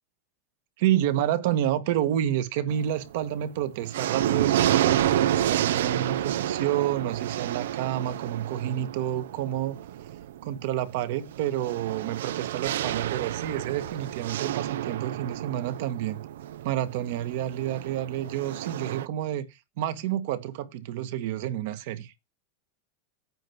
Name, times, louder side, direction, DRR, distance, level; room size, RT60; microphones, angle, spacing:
voice 1, 0.8-9.8 10.4-16.2 16.6-19.4 19.8-22.1, right 11 dB, 65° right, 1.5 m, -29 dB
sound 1, 2.7-3.2 3.6-19.1, right 11 dB, 85° right, 0.5 m, -29 dB
8.9 x 4.6 x 6.9 m
supercardioid pair, 150°, 0 cm